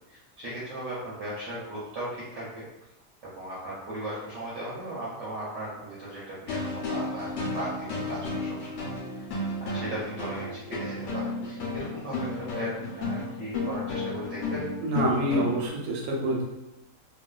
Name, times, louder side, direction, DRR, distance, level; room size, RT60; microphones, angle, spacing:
voice 1, 0.1-2.6 3.2-8.9 9.2-9.3 9.6-14.6, right 1 dB, 65° right, -7 dB, 0.9 m, -37 dB
sound 1, 6.5-15.7, left 2 dB, 65° left, 0.8 m, -33 dB
voice 2, 14.8-16.4, right 1 dB, 85° right, -2 dB, 1.1 m, -26 dB
2.4 x 2.3 x 2.2 m, 0.93 s
omnidirectional pair, 1.5 m